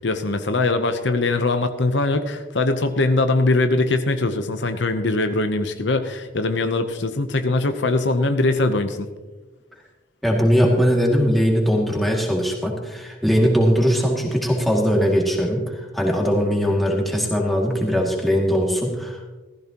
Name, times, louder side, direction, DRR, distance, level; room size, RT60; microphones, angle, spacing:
voice 1, 0.0-9.1, left 2 dB, 70° left, 8 dB, 0.8 m, -21 dB
voice 2, 10.2-19.2, equal, ahead, -2 dB, 2.3 m, -20 dB
15.5 x 14.5 x 3.0 m, 1.2 s
head